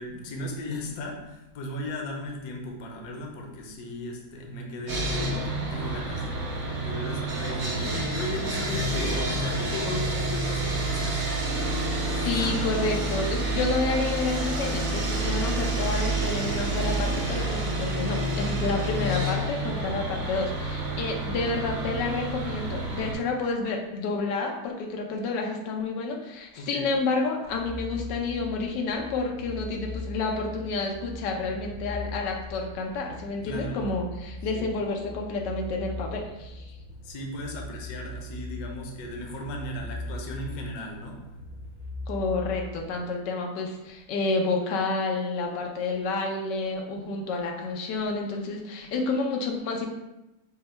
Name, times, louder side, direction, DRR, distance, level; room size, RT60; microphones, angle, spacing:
voice 1, 0.0-11.7 12.1-12.6 26.6-26.9 33.4-33.9 34.5-34.7 37.0-41.3, left 1 dB, 65° left, 1 dB, 1.2 m, -36 dB
Sawing, 4.9-23.1, right 1 dB, 60° right, 1.2 m, -29 dB
voice 2, 12.2-36.7 42.1-49.9, left 3 dB, 85° left, 2 dB, 1.3 m, -29 dB
sound 1, 27.4-42.9, left 1 dB, 90° right, 0.5 m, -40 dB
5.5 x 2.2 x 4.3 m, 0.95 s
omnidirectional pair, 1.8 m